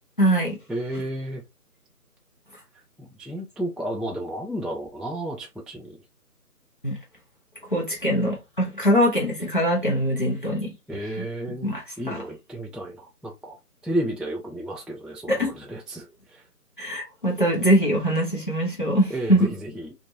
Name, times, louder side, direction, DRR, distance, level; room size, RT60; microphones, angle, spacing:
voice 1, 0.2-0.6 6.8-6.9 7.7-10.7 11.2-11.3 11.6-12.2 15.3-15.6 16.8-19.5, equal, 35° left, 0.9 m, -22 dB
voice 2, 0.7-1.4 3.0-6.0 10.9-11.7 12.0-13.6 13.8-16.4 19.1-19.9, right 1 dB, ahead, 0.3 m, -32 dB
2.8 x 2.5 x 2.6 m
figure-of-eight pair, 180°, 47 cm